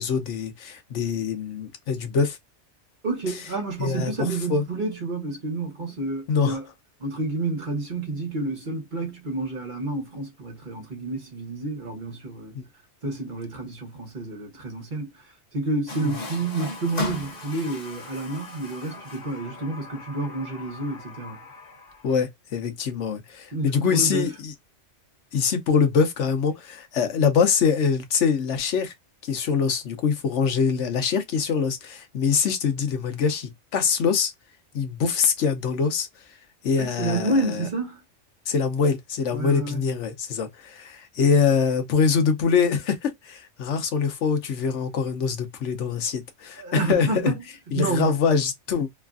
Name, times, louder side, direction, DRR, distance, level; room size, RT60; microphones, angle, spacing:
voice 1, 0.0-2.4 3.8-4.1 4.5-4.6 6.3-6.6 12.5-12.6 22.0-24.5 25.3-28.9 29.2-34.3 34.7-36.1 36.6-37.7 38.5-47.3 47.7-48.9, left 6 dB, 80° left, 1.1 m, -24 dB
voice 2, 3.0-6.7 7.0-12.6 13.0-21.4 23.5-24.3 36.8-38.0 39.3-39.8 46.6-47.4 47.7-48.1, right 2 dB, 45° right, 1.2 m, -29 dB
Water tap faucet, 15.9-22.2, left 2 dB, 35° left, 1.2 m, -37 dB
3.1 x 2.4 x 2.4 m
omnidirectional pair, 1.2 m